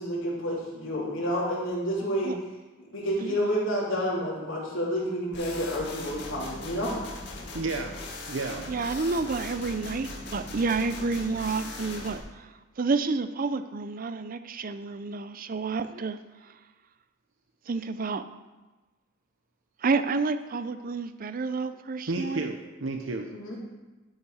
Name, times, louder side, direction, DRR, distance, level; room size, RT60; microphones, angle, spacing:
voice 1, 0.0-2.3 2.9-6.9 23.3-23.6, equal, 75° left, -6 dB, 3.3 m, -29 dB
voice 2, 3.2-3.5 8.7-16.6 17.7-18.3 19.8-22.5, right 4 dB, 45° right, 11 dB, 0.5 m, -30 dB
sound 1, 5.3-12.2, left 2 dB, 60° left, 1.7 m, -39 dB
voice 3, 7.5-8.0 8.3-8.7 22.1-23.3, right 3 dB, 75° right, 3 dB, 0.8 m, -32 dB
12.5 x 5.5 x 4.9 m, 1.2 s
head